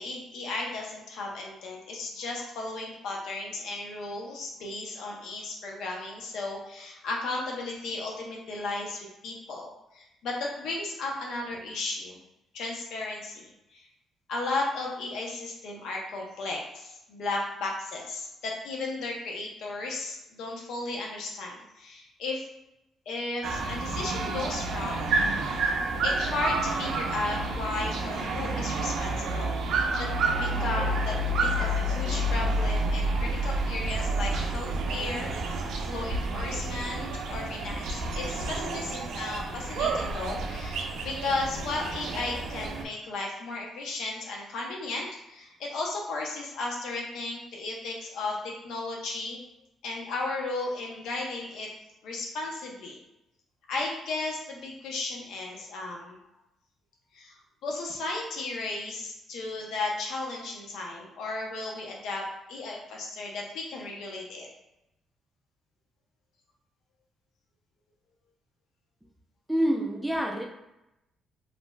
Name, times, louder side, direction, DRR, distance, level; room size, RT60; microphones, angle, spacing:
voice 1, 0.0-12.2 12.5-13.4 13.7-13.9 14.3-22.4 23.1-25.2 26.0-29.5 30.0-35.3 35.9-48.4 48.6-49.4 49.8-51.7 52.0-53.0 53.7-56.2 57.1-57.3 57.6-64.5, left 3 dB, 80° left, -1 dB, 0.6 m, -35 dB
sound 1, 23.4-42.8, right 2 dB, 75° right, 0.4 m, -29 dB
voice 2, 69.5-70.4, right 1 dB, 5° right, 0 dB, 0.4 m, -26 dB
3.1 x 2.5 x 2.2 m, 0.87 s
cardioid pair, 90°, 0 cm